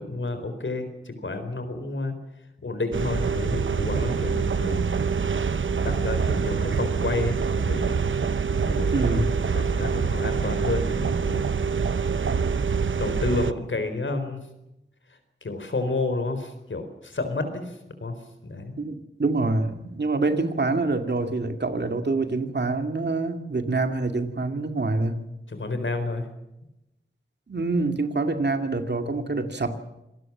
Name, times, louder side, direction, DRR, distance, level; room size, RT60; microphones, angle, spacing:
voice 1, 0.0-2.1 2.6-4.9 5.8-7.9 8.6-11.5 13.0-14.4 15.1-18.2 18.4-18.8 25.5-26.3, left 2 dB, 75° left, 8 dB, 4.2 m, -30 dB
sound 1, 2.9-13.5, right 5 dB, 80° right, 0.9 m, -25 dB
voice 2, 8.9-9.3 18.8-25.3 27.5-29.8, right 3 dB, 60° right, 7 dB, 2.4 m, -26 dB
26.0 x 18.5 x 7.4 m, 0.91 s
wide cardioid pair, 75°, 20 cm